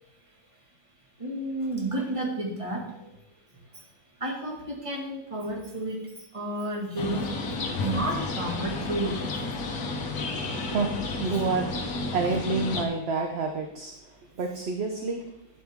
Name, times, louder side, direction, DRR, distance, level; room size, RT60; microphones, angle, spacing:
voice 1, 1.2-2.8 4.2-6.0 6.3-7.3 7.8-9.2, right 1 dB, 20° right, -1 dB, 2.0 m, -31 dB
sound 1, 7.0-12.8, left 3 dB, 80° left, 1.6 m, -32 dB
voice 2, 10.6-13.9 14.4-15.2, right 4 dB, 50° right, 3 dB, 1.0 m, -29 dB
11.5 x 8.2 x 3.6 m, 0.86 s
omnidirectional pair, 1.5 m